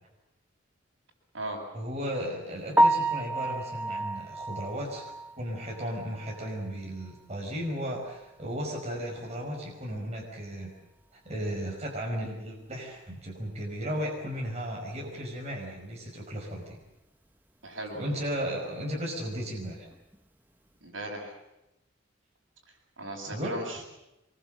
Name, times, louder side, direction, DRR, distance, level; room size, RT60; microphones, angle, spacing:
voice 1, 1.7-5.0 5.4-10.7 11.1-16.8 17.9-19.9 23.3-23.6, equal, 35° right, -1 dB, 5.4 m, -35 dB
Piano, 2.7-6.7 7.1-7.2 7.7-7.8 8.1-8.2 11.3-11.4 19.9-20.2, right 1 dB, 10° right, 1.0 m, -29 dB
voice 2, 17.6-18.1 20.8-21.4 23.0-23.8, right 1 dB, 70° right, 1 dB, 7.7 m, -37 dB
25.5 x 23.0 x 7.7 m, 0.94 s
head